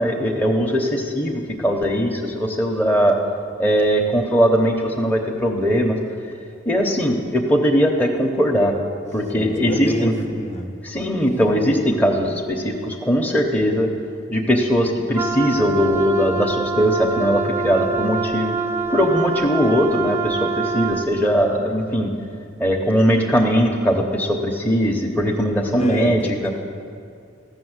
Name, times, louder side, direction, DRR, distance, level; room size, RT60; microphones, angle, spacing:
voice 1, 0.0-3.2 3.6-6.0 6.6-8.8 9.1-10.1 10.8-13.9 14.3-18.6 18.9-22.1 22.6-26.5, equal, 10° left, -1 dB, 0.9 m, -20 dB
voice 2, 9.3-10.8 25.7-26.5, right 1 dB, 35° left, 3 dB, 1.0 m, -28 dB
Wind instrument woodwind instrument, 15.1-21.1, right 4 dB, 15° right, 0.4 m, -25 dB
14.5 x 6.5 x 8.0 m, 2.4 s
head